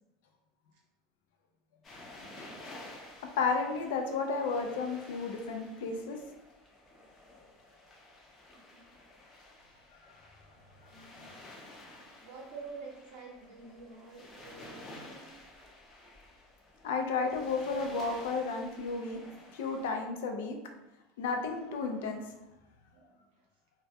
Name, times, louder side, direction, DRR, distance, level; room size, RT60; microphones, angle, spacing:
sound 1, 1.8-19.9, left 1 dB, 25° left, 0.4 m, -52 dB
voice 1, 3.4-6.2 16.8-19.2 19.5-20.6 21.2-22.2, left 4 dB, 85° left, 4 dB, 0.4 m, -32 dB
voice 2, 8.5-8.9 10.9-11.5 12.2-15.3 22.9-23.5, right 4 dB, 70° right, -1 dB, 0.7 m, -49 dB
2.1 x 2.1 x 2.7 m, 0.94 s
supercardioid pair, 160°, 0 cm